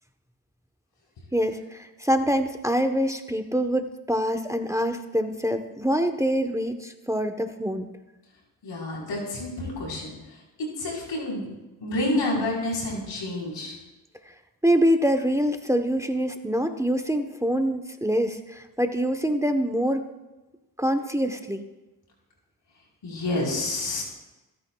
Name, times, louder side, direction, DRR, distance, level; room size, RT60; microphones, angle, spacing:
voice 1, 1.3-7.9 14.6-20.0 20.8-21.6, equal, 5° right, 7 dB, 1.0 m, -25 dB
voice 2, 8.6-10.1 10.8-11.5 11.8-13.7 23.0-24.0, left 2 dB, 85° left, -2 dB, 4.4 m, -29 dB
23.5 x 9.7 x 2.4 m, 1.1 s
supercardioid pair, 45°, 43 cm